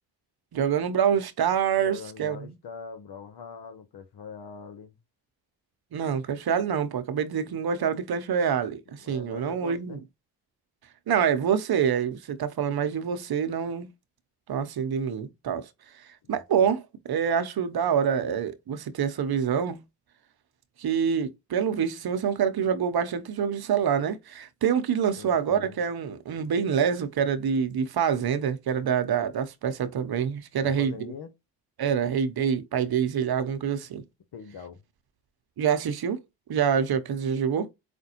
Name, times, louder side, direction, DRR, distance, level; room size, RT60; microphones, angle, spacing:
voice 1, 0.5-2.5 5.9-10.0 11.1-13.9 14.5-15.7 16.0-16.8 17.1-19.8 20.8-30.9 31.8-34.0 35.6-36.2 36.5-37.7, right 7 dB, 50° right, 0.8 m, -26 dB
voice 2, 1.8-5.0 9.0-10.0 16.2-16.4 25.2-25.8 30.6-31.3 34.3-34.8, left 5 dB, 55° left, 0.9 m, -42 dB
4.9 x 2.1 x 2.9 m
hypercardioid pair, 45°, 49 cm